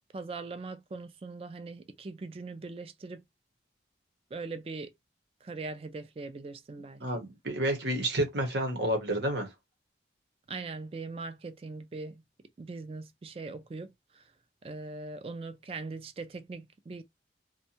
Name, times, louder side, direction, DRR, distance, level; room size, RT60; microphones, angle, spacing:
voice 1, 0.1-3.2 4.3-4.9 5.4-7.0 10.5-12.2 12.6-14.2 14.6-17.0, right 3 dB, 30° right, 0.3 m, -41 dB
voice 2, 7.0-9.5, right 1 dB, 75° right, 1.0 m, -30 dB
2.6 x 2.2 x 2.7 m
head